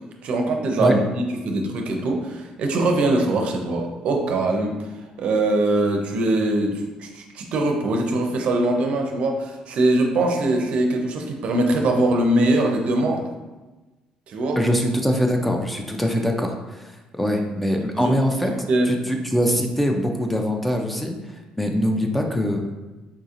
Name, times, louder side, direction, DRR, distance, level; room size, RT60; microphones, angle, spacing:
voice 1, 0.2-1.0 1.4-4.8 5.2-13.2 14.3-14.6 18.0-18.1 18.4-18.9, right 2 dB, 60° right, 3 dB, 0.5 m, -22 dB
voice 2, 14.6-22.6, equal, 5° left, 2 dB, 0.3 m, -23 dB
3.8 x 2.7 x 2.5 m, 1.2 s
cardioid pair, 110°, 2 cm